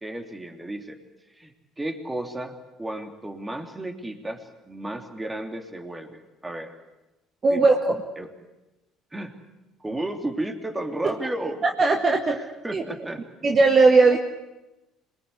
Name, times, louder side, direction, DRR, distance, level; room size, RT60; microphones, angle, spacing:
voice 1, 0.0-1.0 1.3-6.7 7.5-7.7 8.2-8.3 9.1-9.3 9.8-11.6 12.3-13.2 14.0-14.2, right 1 dB, 15° right, 6 dB, 3.0 m, -33 dB
voice 2, 7.4-8.0 11.0-11.1 11.8-12.4 12.7-12.8 13.4-14.2, right 3 dB, 35° right, 3 dB, 1.9 m, -18 dB
26.0 x 21.0 x 8.2 m, 1.0 s
figure-of-eight pair, 55°, 0 cm